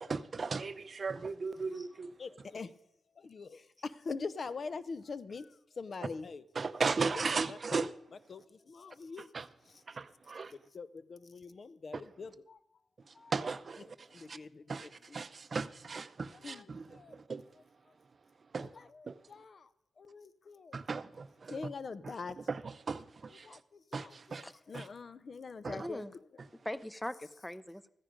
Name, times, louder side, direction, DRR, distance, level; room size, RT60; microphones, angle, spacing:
voice 1, 0.0-2.1 6.5-7.9 9.2-9.5 9.9-10.5 11.9-12.0 13.1-14.4 14.7-17.4 18.5-18.7 19.1-19.2 20.7-21.6 22.0-22.1 22.5-23.6 23.9-24.5 24.7-24.9 25.6-25.9, right 4 dB, 45° right, 0.6 m, -37 dB
voice 2, 2.2-2.8 3.2-6.4 7.3-7.8 8.3-9.3 10.7-12.6 13.1-13.3 14.1-15.2 16.4-17.2 18.6-19.7 20.0-20.8 21.5-22.4 23.4-26.0, left 4 dB, 55° left, 0.7 m, -44 dB
voice 3, 25.7-26.1 26.5-27.9, left 1 dB, 10° left, 0.6 m, -41 dB
14.0 x 9.9 x 5.1 m
cardioid pair, 80°, 0 cm